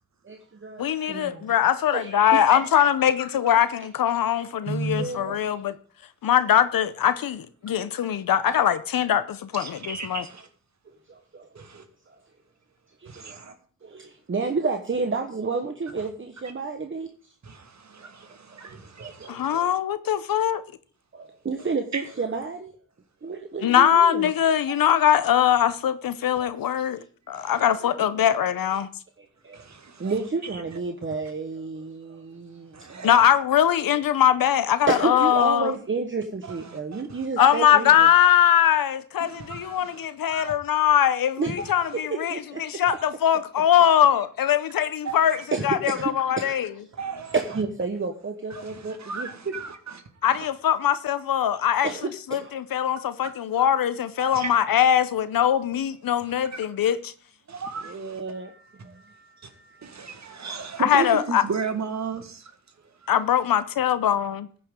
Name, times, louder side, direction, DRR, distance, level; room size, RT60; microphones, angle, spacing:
voice 1, 0.2-1.5 1.9-3.4 3.8-3.9 4.4-4.5 5.0-5.4 7.9-8.1 10.8-12.3 13.0-13.4 13.8-17.3 18.0-19.7 21.1-22.8 23.2-24.3 26.3-26.6 26.9-27.1 27.8-28.3 29.2-29.7 30.0-33.1 34.8-38.1 41.4-42.6 45.5-47.0 47.3-49.5 51.8-52.5 57.7-60.3, right 4 dB, 35° right, 1.2 m, -32 dB
voice 2, 0.8-5.7 6.2-10.2 19.3-20.6 23.6-27.0 27.3-28.9 33.0-35.7 37.4-42.3 42.6-46.7 50.2-51.9 52.3-57.1 60.8-61.4 63.1-64.5, left 10 dB, 90° left, 0.7 m, -21 dB
voice 3, 4.7-5.1 8.4-8.6 9.5-10.5 11.6-11.8 13.1-13.5 17.4-19.6 21.9-22.0 27.3-27.6 29.5-30.1 32.7-33.2 36.5-37.5 39.2-40.5 42.9-43.0 45.0-45.4 46.9-47.3 48.5-49.8 50.2-50.5 53.2-53.3 54.2-54.6 56.2-56.6 57.5-58.2 59.4-59.5 59.8-62.5, right 5 dB, 55° right, 1.7 m, -35 dB
15.0 x 9.5 x 3.7 m
wide cardioid pair, 110°, 33 cm